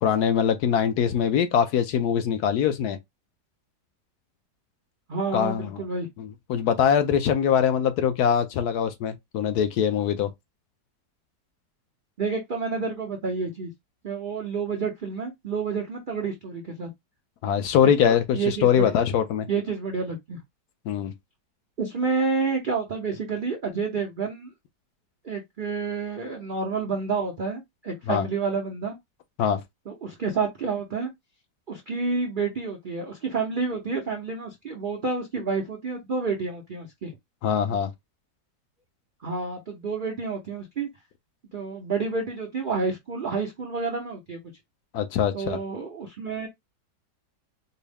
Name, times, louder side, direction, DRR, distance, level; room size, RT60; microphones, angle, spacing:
voice 1, 0.0-3.0 5.3-5.8 6.2-10.3 17.4-19.5 20.9-21.1 28.1-28.3 29.4-29.6 37.4-37.9 44.9-45.6, left 8 dB, 70° left, 1.0 m, -23 dB
voice 2, 5.1-6.1 12.2-13.7 14.0-16.9 18.0-18.9 19.5-20.4 21.8-24.5 25.2-29.0 29.9-31.1 31.7-37.1 39.2-40.9 41.5-44.4 45.3-46.5, right 4 dB, 65° right, 0.5 m, -29 dB
4.5 x 2.0 x 3.3 m
omnidirectional pair, 1.9 m